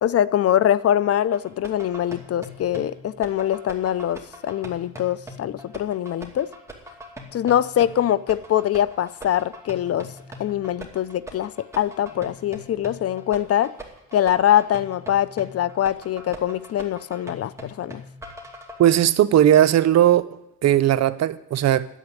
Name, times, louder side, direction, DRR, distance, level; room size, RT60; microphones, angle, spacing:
voice 1, 0.0-6.5 7.3-10.1 10.4-13.7 14.1-18.0, left 11 dB, 50° left, 0.5 m, -23 dB
sound 1, 1.3-18.9, equal, 10° right, 2.5 m, -41 dB
voice 2, 18.8-20.3 20.6-21.9, right 11 dB, 60° right, 0.7 m, -17 dB
10.0 x 7.9 x 9.6 m
cardioid pair, 90°, 30 cm